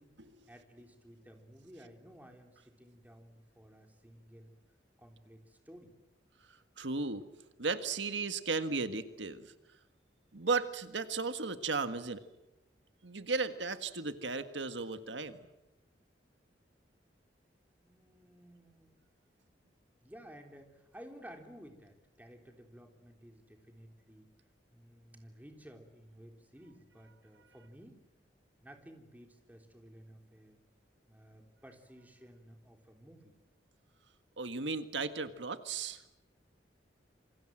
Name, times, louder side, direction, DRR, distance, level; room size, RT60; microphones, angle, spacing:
voice 1, 0.5-4.5 5.0-5.9 17.8-19.0 20.0-24.3 24.7-28.0 28.6-30.6 31.1-33.4, equal, 10° right, 4 dB, 3.5 m, -55 dB
voice 2, 6.8-7.2 7.6-9.5 10.3-12.2 13.0-15.4 34.4-36.0, right 4 dB, 90° right, 10 dB, 1.7 m, -35 dB
27.5 x 25.0 x 7.8 m, 0.94 s
head